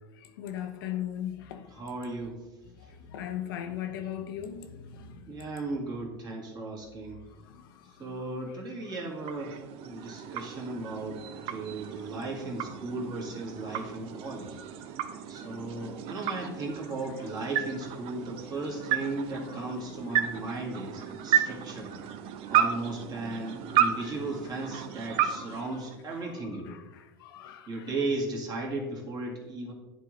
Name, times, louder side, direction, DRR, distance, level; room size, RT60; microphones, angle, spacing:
voice 1, 0.2-1.7 2.8-5.5 7.3-8.5 10.0-10.1 13.7-13.9 15.4-15.9 16.3-16.4 19.5-19.7 23.7-24.2 24.7-24.8 25.1-25.6 26.6-27.8, left 10 dB, 75° left, 0.8 m, -40 dB
voice 2, 1.7-2.5 2.8-2.9 5.3-7.2 8.0-14.6 15.3-21.9 22.5-26.8 27.7-29.7, right 2 dB, 35° right, 1.9 m, -36 dB
sound 1, 8.7-26.5, right 9 dB, 50° right, 0.6 m, -33 dB
10.5 x 3.7 x 3.1 m
hypercardioid pair, 95°, 12 cm